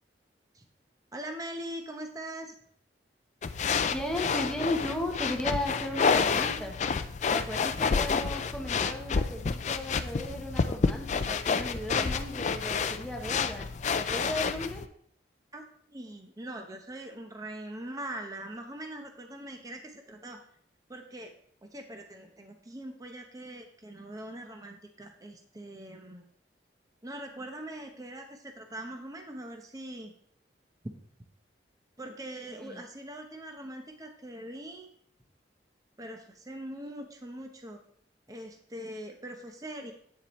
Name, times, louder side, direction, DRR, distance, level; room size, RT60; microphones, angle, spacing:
voice 1, 1.1-2.6 7.6-7.7 15.5-15.6 15.9-20.4 20.9-21.3 21.6-26.2 27.0-30.1 30.8-30.9 32.0-34.9 36.0-37.8 38.3-39.9, right 1 dB, 20° right, 4 dB, 0.9 m, -42 dB
sound 1, 3.4-14.9, left 5 dB, 40° left, 0.4 m, -29 dB
voice 2, 3.8-6.7 7.3-14.8 32.5-32.8, left 1 dB, 5° left, 1 dB, 1.0 m, -36 dB
8.6 x 7.3 x 3.1 m, 0.64 s
head